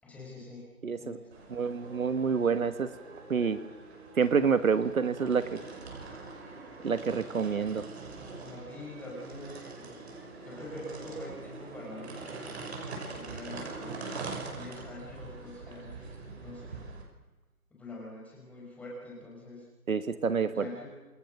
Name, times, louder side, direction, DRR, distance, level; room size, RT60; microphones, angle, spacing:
voice 1, 0.0-1.7 8.4-10.1 10.5-12.5 13.1-14.1 14.5-16.8 17.7-19.7 20.5-21.0, left 1 dB, 5° left, -3 dB, 5.0 m, -45 dB
voice 2, 0.8-1.2 1.5-2.9 3.3-3.6 4.2-5.6 6.8-7.9 19.9-20.7, right 6 dB, 65° right, 11 dB, 1.6 m, -27 dB
sound 1, 1.3-17.0, right 3 dB, 45° right, 6.9 m, -43 dB
28.0 x 28.0 x 6.5 m, 1.2 s
figure-of-eight pair, 160°, 44 cm